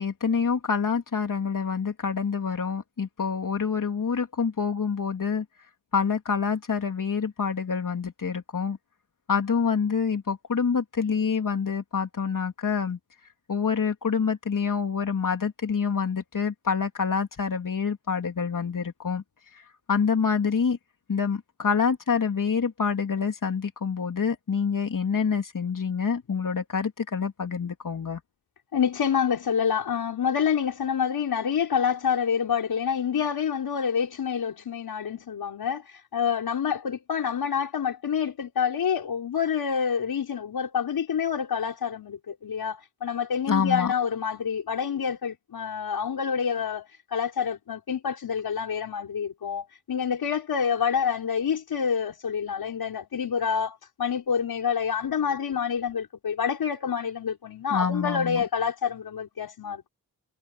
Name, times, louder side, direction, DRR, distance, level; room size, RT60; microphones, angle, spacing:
voice 1, 0.0-5.4 5.9-8.8 9.3-13.0 13.5-19.2 19.9-20.8 21.1-28.2 43.5-43.9 57.7-58.4, left 6 dB, 60° left, 3.2 m, -27 dB
voice 2, 28.7-46.9 47.1-59.9, left 7 dB, 85° left, 4.8 m, -27 dB
cardioid pair, 55°, 36 cm